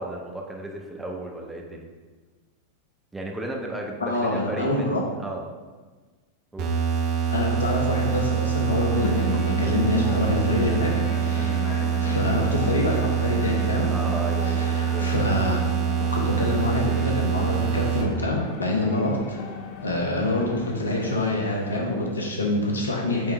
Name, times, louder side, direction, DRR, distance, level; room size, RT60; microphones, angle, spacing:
voice 1, 0.0-1.9 3.1-5.5 6.5-6.7 11.3-11.6 13.9-15.1, right 1 dB, 5° right, 0 dB, 0.9 m, -34 dB
voice 2, 4.0-5.0 7.3-10.9 11.2-11.6 12.0-13.9 14.5-15.6 16.1-19.5 19.8-23.3, left 2 dB, 75° left, 0 dB, 1.1 m, -26 dB
sound 1, 6.6-18.0, right 8 dB, 45° right, 1.1 m, -25 dB
sound 2, 8.9-22.1, left 6 dB, 45° left, 0.6 m, -36 dB
8.1 x 3.7 x 3.3 m, 1.3 s
figure-of-eight pair, 90°, 0 cm